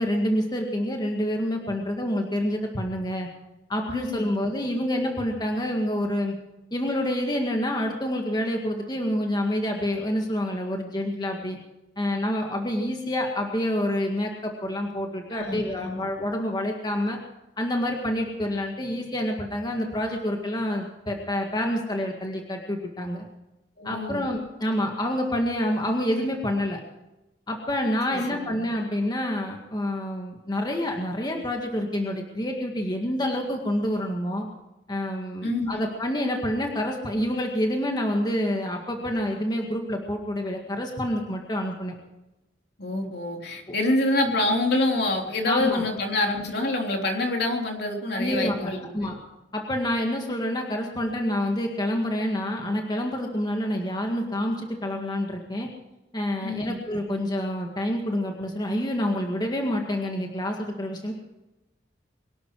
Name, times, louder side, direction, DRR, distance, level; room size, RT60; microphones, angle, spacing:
voice 1, 0.0-3.3 3.7-6.3 6.7-11.6 12.0-17.2 17.6-23.3 23.8-26.8 27.5-34.5 34.9-42.0 45.5-45.9 48.1-49.2 49.5-55.7 56.1-61.1, left 1 dB, 25° left, 2 dB, 1.9 m, -27 dB
voice 2, 3.9-4.3 15.3-16.0 23.8-24.2 28.1-28.5 35.4-35.7 42.8-49.1 56.4-56.8, left 2 dB, 65° left, 2 dB, 3.5 m, -26 dB
23.0 x 12.0 x 4.7 m, 0.98 s
head